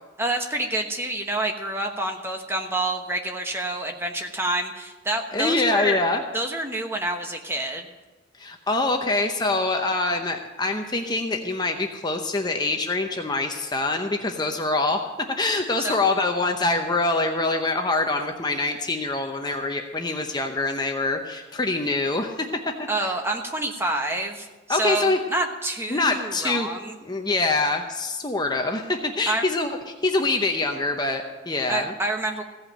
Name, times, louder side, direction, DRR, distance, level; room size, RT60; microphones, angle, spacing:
voice 1, 0.2-6.0 6.3-7.9 15.8-16.0 22.9-26.9 29.3-29.5 31.7-32.4, right 2 dB, 10° right, 3 dB, 1.1 m, -28 dB
voice 2, 5.3-6.2 8.4-15.0 15.4-22.5 22.8-23.1 24.7-25.2 25.9-26.7 27.0-29.7 30.0-31.9, left 2 dB, 20° left, 4 dB, 0.8 m, -25 dB
16.0 x 5.6 x 8.6 m, 1.2 s
head